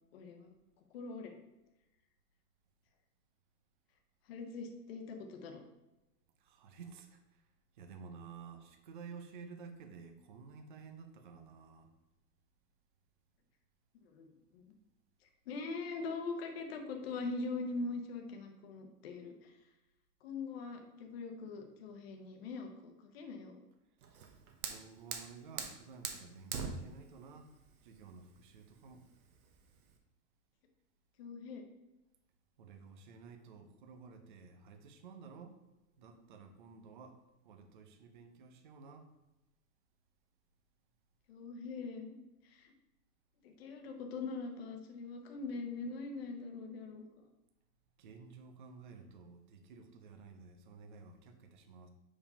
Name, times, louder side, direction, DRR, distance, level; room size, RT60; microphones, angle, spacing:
voice 1, 0.1-0.5 0.9-1.3 4.3-5.6 14.0-14.3 14.5-14.6 15.5-19.5 20.2-23.6 31.2-31.6 41.3-42.1 42.4-42.7 43.4-47.0, left 3 dB, 40° left, 4 dB, 0.9 m, -42 dB
voice 2, 6.4-7.4 7.8-11.9 24.6-27.5 27.8-29.1 32.6-35.6 36.0-37.2 37.4-39.1 48.0-51.9, right 5 dB, 35° right, 6 dB, 0.5 m, -53 dB
Fire, 24.0-30.0, right 6 dB, 60° right, 1.1 m, -45 dB
5.3 x 4.9 x 5.4 m, 0.97 s
supercardioid pair, 170°, 48 cm